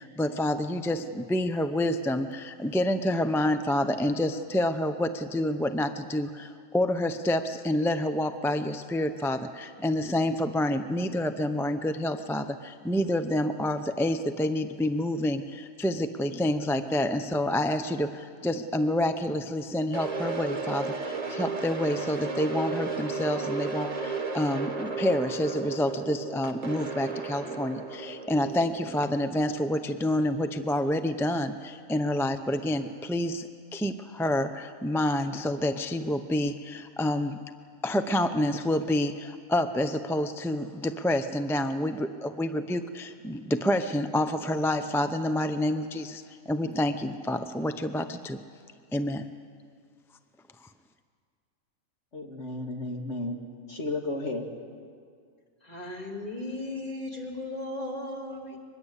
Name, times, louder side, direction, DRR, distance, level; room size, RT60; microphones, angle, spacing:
voice 1, 0.0-37.4 37.8-48.4 48.9-49.2, left 1 dB, 5° left, 9 dB, 0.4 m, -28 dB
sound 1, 19.9-30.0, right 4 dB, 30° right, 1.3 m, -34 dB
voice 2, 52.1-53.4 53.7-54.4, left 2 dB, 55° left, 2 dB, 2.2 m, -33 dB
voice 3, 55.6-58.6, left 2 dB, 25° left, 0 dB, 3.2 m, -36 dB
23.5 x 21.0 x 8.3 m, 2.1 s
omnidirectional pair, 1.5 m